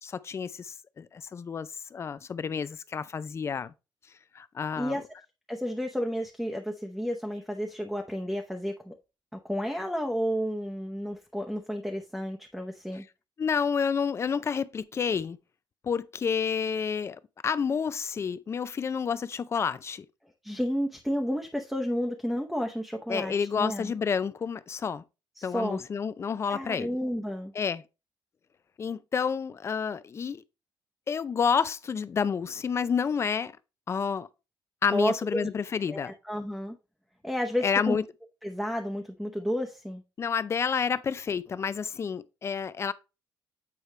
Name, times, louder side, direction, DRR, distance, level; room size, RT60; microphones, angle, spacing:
voice 1, 0.0-3.7 4.3-5.0 13.4-15.4 15.8-20.1 23.1-25.0 25.4-26.9 27.5-27.8 28.8-30.4 31.1-33.5 33.9-34.3 34.8-36.1 37.6-38.0 40.2-42.9, left 6 dB, 35° left, 0.5 m, -29 dB
voice 2, 5.5-8.9 9.3-13.0 20.4-23.9 25.4-25.8 26.5-27.5 34.9-35.5 35.9-36.8 37.2-38.0 38.4-40.0, equal, ahead, 0.8 m, -31 dB
8.4 x 4.6 x 3.2 m
cardioid pair, 125°, 8 cm